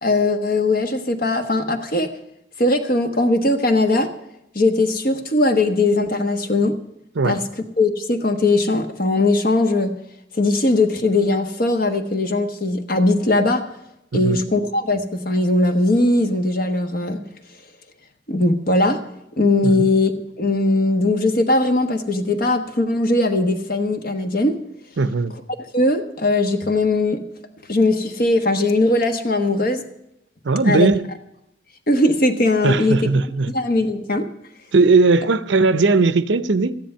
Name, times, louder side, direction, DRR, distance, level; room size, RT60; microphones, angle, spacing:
voice 1, 0.0-2.1 2.6-4.1 4.5-6.8 7.2-7.4 7.8-9.9 10.3-13.6 14.1-17.2 18.3-19.0 19.4-20.1 20.4-24.6 25.7-27.2 27.7-29.8 30.6-30.9 31.9-33.0 33.5-34.3, left 2 dB, 45° left, 7 dB, 1.2 m, -19 dB
voice 2, 25.0-25.3 30.4-31.0 32.6-33.5 34.7-36.8, right 3 dB, 60° right, 14 dB, 0.6 m, -18 dB
13.5 x 10.5 x 5.5 m, 0.83 s
head